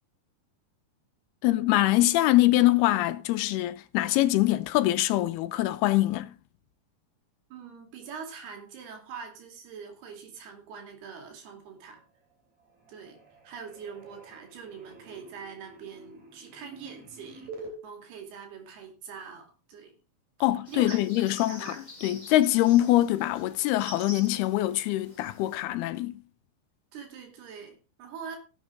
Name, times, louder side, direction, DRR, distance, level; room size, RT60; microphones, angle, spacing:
voice 1, 1.4-6.3 20.4-26.2, left 16 dB, 85° left, 2.7 m, -24 dB
voice 2, 7.5-12.0 12.9-19.9 20.7-21.8 26.9-28.4, right 6 dB, 85° right, 4.4 m, -44 dB
sound 1, 11.8-12.3 12.6-17.7, right 3 dB, 50° right, 4.3 m, -48 dB
sound 2, 20.7-25.6, left 1 dB, 15° left, 1.8 m, -47 dB
18.0 x 7.3 x 3.7 m
omnidirectional pair, 4.4 m